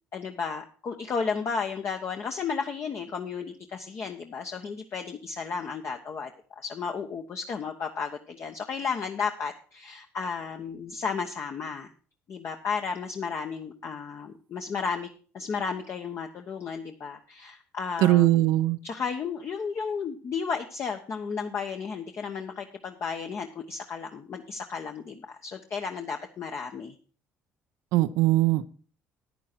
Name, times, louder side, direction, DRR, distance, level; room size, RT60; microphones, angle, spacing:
voice 1, 0.1-6.3 6.6-11.9 12.3-18.6 18.8-26.9, left 5 dB, 50° left, 4 dB, 1.1 m, -33 dB
voice 2, 18.0-18.8 27.9-28.7, right 15 dB, 80° right, 13 dB, 0.6 m, -21 dB
10.0 x 9.8 x 4.4 m, 0.39 s
supercardioid pair, 80°, 6 cm